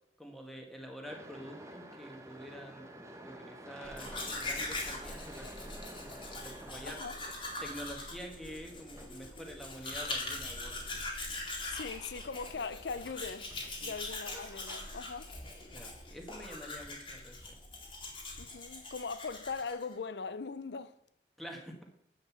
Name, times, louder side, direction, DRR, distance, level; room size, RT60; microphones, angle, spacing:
voice 1, 0.2-7.0 7.6-10.8 13.8-13.9 15.7-17.4 21.4-21.8, equal, ahead, 1.5 m, -47 dB
sound 1, 1.0-15.8, right 1 dB, 15° right, 1.0 m, -52 dB
Domestic sounds home sounds, 3.8-19.9, left 2 dB, 30° left, 2.1 m, -42 dB
voice 2, 6.9-7.2 11.6-13.5 13.8-15.3 18.4-20.9, left 5 dB, 70° left, 0.5 m, -40 dB
8.7 x 5.2 x 7.2 m
head